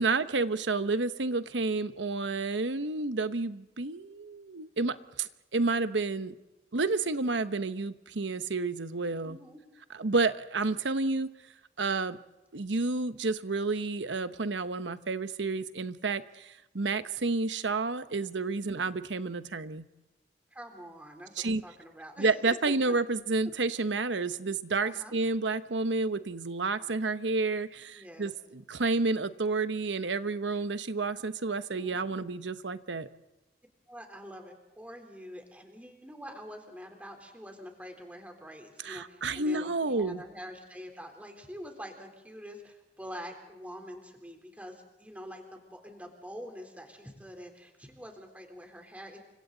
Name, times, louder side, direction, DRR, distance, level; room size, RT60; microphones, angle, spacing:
voice 1, 0.0-6.3 6.7-9.4 9.9-11.3 11.8-12.2 12.5-19.9 21.4-21.6 22.2-33.1 38.8-40.2, right 3 dB, 85° right, 12 dB, 1.0 m, -30 dB
voice 2, 9.2-9.6 18.6-18.9 20.5-22.5 24.8-25.2 28.0-28.3 31.7-32.2 33.9-49.2, equal, 10° right, 3 dB, 3.6 m, -46 dB
29.5 x 25.0 x 4.0 m, 1.0 s
head